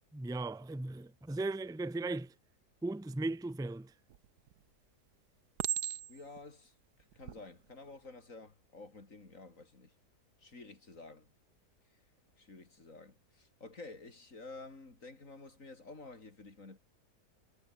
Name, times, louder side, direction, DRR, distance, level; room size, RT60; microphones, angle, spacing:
voice 1, 0.1-2.3 2.8-3.9, right 2 dB, 5° right, 0.6 m, -37 dB
Chink clink, 4.1-4.6 5.6-6.4 7.1-7.4, right 12 dB, 75° right, 1.4 m, -37 dB
voice 2, 6.1-6.8 7.1-9.9 10.4-11.3 11.9-12.0 12.4-16.8, left 3 dB, 50° left, 4.1 m, -51 dB
omnidirectional pair, 1.7 m